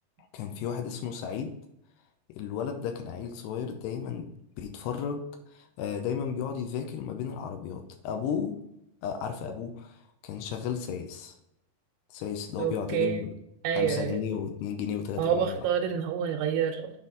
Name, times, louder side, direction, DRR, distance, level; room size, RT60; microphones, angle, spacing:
voice 1, 0.3-1.6 2.3-4.3 4.6-8.6 9.0-11.4 12.1-13.3 13.7-15.6, left 7 dB, 90° left, 5 dB, 2.8 m, -34 dB
voice 2, 12.6-13.2 13.6-14.2 15.2-16.9, right 8 dB, 80° right, 2 dB, 2.6 m, -28 dB
7.1 x 4.2 x 3.7 m, 0.81 s
omnidirectional pair, 4.7 m